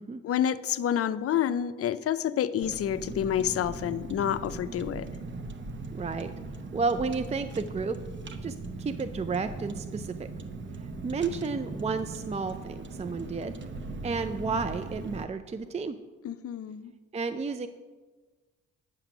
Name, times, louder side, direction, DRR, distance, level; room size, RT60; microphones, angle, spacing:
voice 1, 0.2-5.1 16.2-16.9, left 10 dB, 50° left, 13 dB, 0.5 m, -28 dB
Car, 2.6-15.2, right 3 dB, 40° right, 0.9 m, -39 dB
voice 2, 5.9-6.3 6.7-8.0 8.4-10.2 11.0-13.5 14.0-16.0 17.1-17.7, right 4 dB, 25° right, 10 dB, 0.4 m, -32 dB
9.0 x 5.8 x 6.0 m, 1.3 s
supercardioid pair, 65°, 29 cm